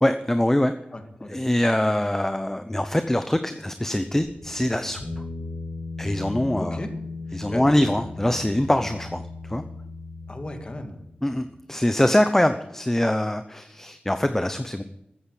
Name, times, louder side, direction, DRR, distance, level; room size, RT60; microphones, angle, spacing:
voice 1, 0.0-0.7 1.3-5.0 6.0-6.8 7.3-9.2 9.5-9.6 11.2-14.8, left 1 dB, 10° left, 9 dB, 0.8 m, -23 dB
voice 2, 0.9-1.4 6.6-6.9 7.3-7.8 10.3-11.0, left 1 dB, 30° left, 5 dB, 2.2 m, -36 dB
sound 1, 4.2-11.6, left 3 dB, 65° left, 4.2 m, -37 dB
14.5 x 9.3 x 8.5 m, 0.83 s
wide cardioid pair, 95°, 3 cm